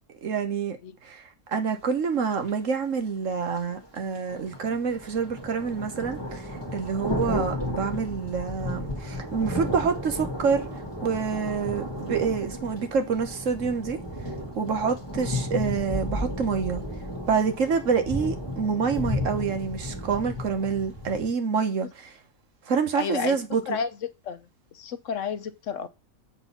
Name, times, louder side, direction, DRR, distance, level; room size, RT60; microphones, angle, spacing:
voice 1, 0.2-0.8 1.0-1.2 1.5-10.6 11.0-14.0 14.5-16.8 17.3-22.1 22.7-23.8, right 5 dB, 60° right, 1.5 m, -27 dB
sound 1, 2.5-2.6 3.5-21.3, left 1 dB, 15° left, 1.7 m, -33 dB
voice 2, 22.9-23.4 23.7-23.9 24.2-24.4 24.7-25.9, left 6 dB, 60° left, 1.1 m, -31 dB
7.2 x 4.1 x 5.6 m
omnidirectional pair, 1.5 m